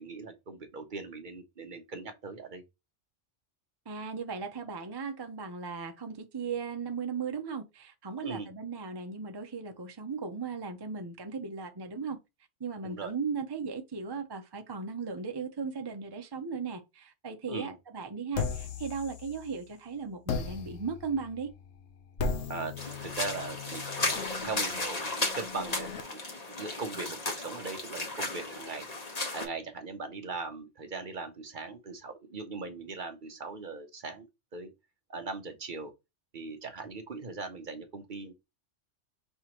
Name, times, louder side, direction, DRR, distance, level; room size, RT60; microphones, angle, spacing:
voice 1, 0.0-2.6 8.2-8.5 12.8-13.2 17.5-17.8 22.5-22.7 23.0-24.1 24.4-26.2 26.6-28.9 29.3-34.3 34.5-34.7 35.1-35.9 36.3-38.3, right 4 dB, 45° right, 0.9 m, -39 dB
voice 2, 3.9-12.2 12.6-21.5, right 5 dB, 30° right, 0.5 m, -37 dB
sound 1, 18.3-19.7 20.3-26.0, left 5 dB, 75° left, 1.1 m, -38 dB
sound 2, 22.8-29.5, left 2 dB, 35° left, 1.3 m, -35 dB
5.6 x 3.0 x 2.9 m
omnidirectional pair, 1.2 m